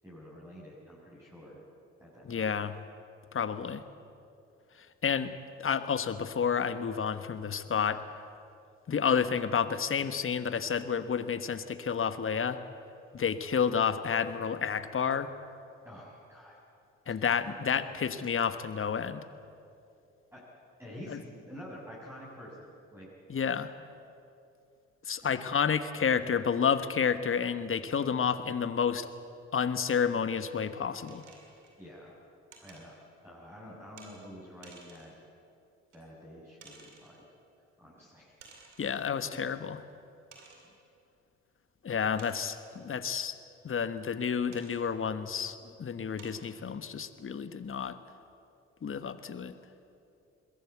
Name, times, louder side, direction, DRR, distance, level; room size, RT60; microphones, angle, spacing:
voice 1, 0.0-1.6 2.0-2.5 15.8-16.6 17.7-17.8 20.3-20.4 20.8-23.1 25.2-25.4 31.8-32.1 32.6-32.9 33.2-35.1 35.9-37.2 37.8-38.4 40.6-40.7, equal, 5° right, -7 dB, 6.4 m, -48 dB
voice 2, 2.2-2.7 3.3-3.8 4.8-5.3 5.6-8.0 8.9-12.6 13.1-15.3 17.1-19.3 21.1-21.2 23.3-23.7 25.0-29.1 29.5-31.2 38.8-39.8 41.8-43.3 43.6-48.0 48.8-49.6, left 7 dB, 35° left, 12 dB, 1.4 m, -30 dB
sound 1, 31.0-31.8 32.5-32.9 34.0-34.1 34.6-35.2 35.9-36.0 36.6-37.2 38.4-39.0 39.5-39.6 40.3-40.7 42.2-42.8 44.5-44.8 45.5-45.6 46.2-46.5, right 4 dB, 90° right, 2.4 m, -54 dB
22.0 x 17.0 x 8.2 m, 2.6 s
hypercardioid pair, 45°, 35 cm